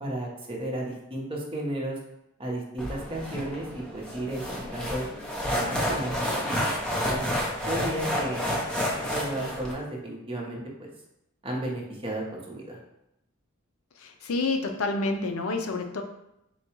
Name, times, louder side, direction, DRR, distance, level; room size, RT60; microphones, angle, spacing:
voice 1, 0.0-2.0 2.4-5.1 5.5-6.7 7.1-7.3 7.7-8.4 9.1-10.9 11.4-12.8, right 1 dB, 25° right, -2 dB, 0.8 m, -33 dB
sound 1, 2.8-9.7, equal, 5° left, 0.6 m, -30 dB
voice 2, 14.0-16.0, left 3 dB, 80° left, 4 dB, 0.5 m, -28 dB
3.8 x 2.3 x 4.5 m, 0.84 s
head